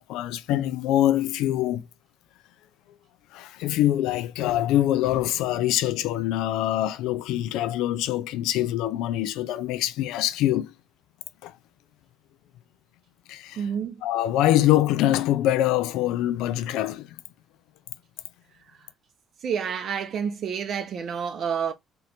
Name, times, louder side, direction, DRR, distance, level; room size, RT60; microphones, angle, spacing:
voice 1, 0.0-1.8 3.3-10.7 11.4-11.5 13.3-13.7 14.0-17.1, left 13 dB, 90° left, 0.4 m, -24 dB
voice 2, 13.6-13.9 19.4-21.7, right 7 dB, 40° right, 0.5 m, -29 dB
3.8 x 2.9 x 3.3 m
cardioid pair, 170°, 0 cm